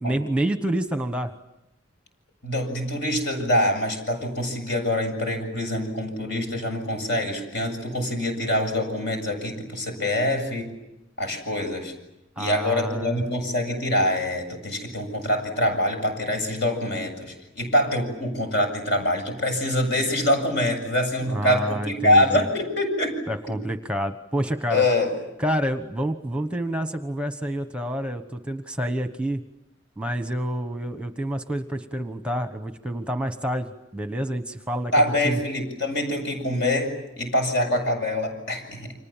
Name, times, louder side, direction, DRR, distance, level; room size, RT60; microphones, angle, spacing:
voice 1, 0.0-1.3 12.4-13.2 21.3-22.5 23.3-24.8 25.4-29.4 30.0-34.9 35.2-35.4, right 1 dB, 5° right, 8 dB, 1.1 m, -28 dB
voice 2, 2.4-10.7 11.2-11.9 12.4-23.2 24.7-25.1 34.9-38.9, left 1 dB, 65° left, 5 dB, 7.6 m, -25 dB
30.0 x 26.0 x 7.4 m, 0.90 s
head